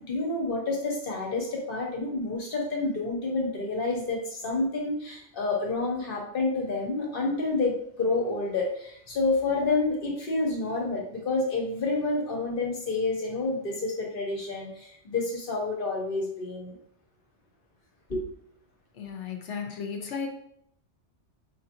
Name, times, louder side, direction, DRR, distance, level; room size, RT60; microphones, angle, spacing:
voice 1, 0.0-16.8 18.1-18.3, left 3 dB, 50° left, -1 dB, 1.1 m, -29 dB
voice 2, 19.0-20.3, left 6 dB, 80° left, 3 dB, 1.1 m, -34 dB
5.0 x 2.8 x 2.5 m, 0.70 s
omnidirectional pair, 1.2 m